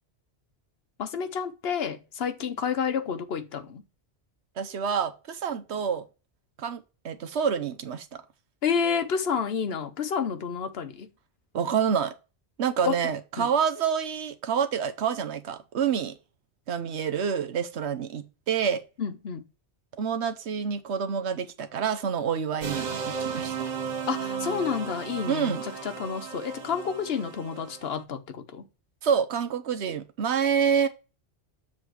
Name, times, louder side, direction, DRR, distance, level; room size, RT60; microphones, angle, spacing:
voice 1, 1.0-3.8 8.6-11.1 12.8-13.0 13.4-13.5 19.0-19.4 24.1-28.7, left 6 dB, 65° left, 1.1 m, -30 dB
voice 2, 4.6-6.0 6.6-8.2 11.5-12.1 12.6-16.1 16.7-18.8 20.0-23.5 25.3-25.6 29.0-30.9, right 7 dB, 85° right, 1.1 m, -27 dB
sound 1, 22.6-27.9, right 6 dB, 45° right, 0.8 m, -34 dB
7.4 x 3.2 x 6.1 m
omnidirectional pair, 1.1 m